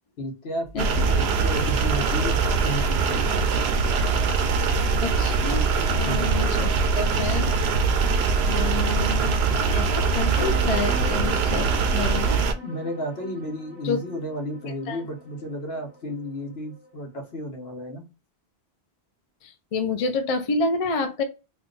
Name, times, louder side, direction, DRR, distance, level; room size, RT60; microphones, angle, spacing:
voice 1, 0.2-3.3 6.0-6.3 12.6-18.1, equal, 70° left, 2 dB, 1.2 m, -33 dB
sound 1, 0.6-11.1, equal, 5° right, 1.0 m, -41 dB
sound 2, 0.8-12.5, right 4 dB, 75° right, 0.8 m, -22 dB
voice 2, 5.0-7.5 8.4-9.4 9.7-12.4 13.8-14.0 14.9-15.0 19.4-21.2, left 3 dB, 45° left, 5 dB, 0.5 m, -29 dB
sound 3, 9.9-16.9, left 3 dB, 15° left, 1.3 m, -42 dB
2.8 x 2.3 x 3.8 m, 0.30 s
omnidirectional pair, 1.1 m